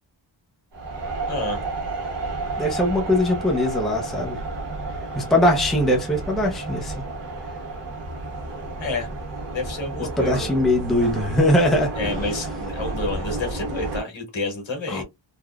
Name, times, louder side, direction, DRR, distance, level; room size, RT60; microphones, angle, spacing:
sound 1, 0.7-14.0, right 2 dB, 60° right, 1.2 m, -31 dB
voice 1, 1.3-1.6 8.8-9.1 9.5-10.6 11.9-15.0, left 3 dB, 70° left, 1.6 m, -29 dB
voice 2, 2.6-4.4 5.1-6.9 10.2-11.9 14.9-15.0, left 1 dB, ahead, 0.6 m, -21 dB
3.5 x 2.3 x 2.2 m
wide cardioid pair, 150°, 47 cm